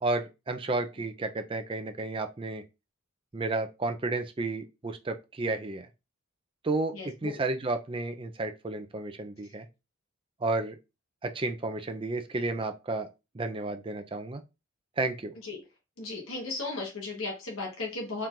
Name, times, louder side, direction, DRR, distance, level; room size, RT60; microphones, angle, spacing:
voice 1, 0.0-2.6 3.3-5.9 6.6-6.9 7.2-9.7 10.4-10.8 11.2-13.1 13.3-14.4 15.0-15.3, right 2 dB, 25° right, 0.5 m, -32 dB
voice 2, 6.9-7.4 15.4-15.6 16.0-18.3, left 3 dB, 80° left, 1.2 m, -36 dB
4.4 x 2.5 x 3.7 m
head